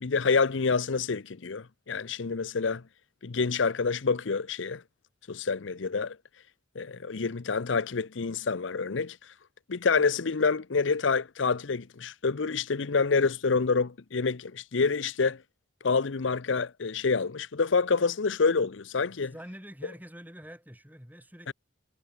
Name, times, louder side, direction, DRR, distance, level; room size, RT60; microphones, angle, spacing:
voice 1, 0.0-2.8 3.2-4.8 5.3-6.2 6.8-9.2 9.7-15.4 15.8-19.3 21.5-21.6, left 4 dB, 75° left, 0.7 m, -27 dB
voice 2, 19.1-21.5, equal, 10° right, 7.7 m, -46 dB
head